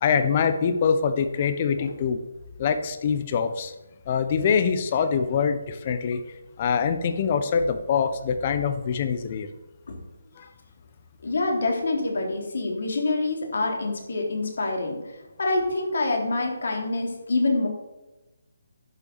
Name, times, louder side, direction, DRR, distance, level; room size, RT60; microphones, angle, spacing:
voice 1, 0.0-2.2 2.6-3.7 4.1-6.2 6.6-9.5 10.4-10.5, left 6 dB, 35° left, 10 dB, 1.1 m, -24 dB
voice 2, 11.2-15.0 15.4-17.7, left 2 dB, 65° left, 1 dB, 3.3 m, -26 dB
10.5 x 7.0 x 6.9 m, 1.0 s
figure-of-eight pair, 150°, 0 cm